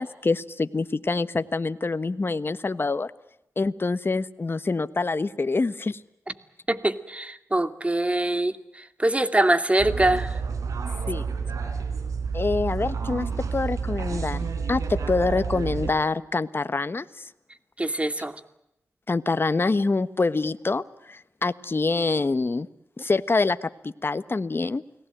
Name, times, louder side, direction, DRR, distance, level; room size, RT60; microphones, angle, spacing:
voice 1, 0.0-3.1 3.6-6.0 11.1-11.3 12.3-17.3 19.1-22.7 23.0-24.8, left 3 dB, 45° left, 13 dB, 1.3 m, -26 dB
voice 2, 6.7-10.3 17.8-18.4, right 1 dB, 25° right, 10 dB, 2.4 m, -24 dB
sound 1, 9.8-15.9, right 5 dB, 90° right, 4.2 m, -29 dB
29.5 x 19.0 x 9.1 m, 0.85 s
cardioid pair, 50°, 5 cm